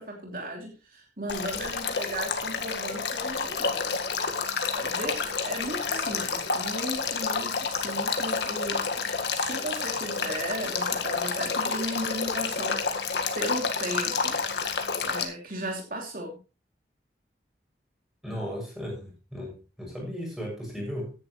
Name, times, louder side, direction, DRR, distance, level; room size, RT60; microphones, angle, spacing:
voice 1, 0.0-4.0 4.7-14.4 15.0-16.4, right 1 dB, 50° right, 0 dB, 3.0 m, -36 dB
Male speech man speaking / Stream / Trickle dribble, 1.3-15.2, left 5 dB, 75° left, 1.8 m, -29 dB
voice 2, 18.2-21.1, equal, ahead, -2 dB, 7.2 m, -36 dB
15.5 x 10.5 x 3.2 m, 0.31 s
head